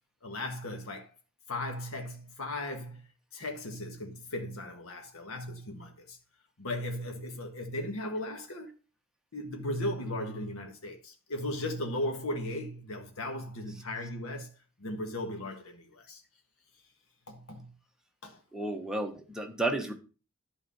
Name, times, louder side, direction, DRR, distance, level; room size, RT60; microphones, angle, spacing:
voice 1, 0.2-1.1 1.5-3.0 3.3-6.2 6.6-8.7 9.3-14.5 14.8-16.2 17.3-17.7 18.2-18.4, left 1 dB, 75° left, 1.6 m, -37 dB
voice 2, 18.5-19.9, right 2 dB, 5° right, 1.3 m, -32 dB
11.0 x 4.7 x 5.5 m
head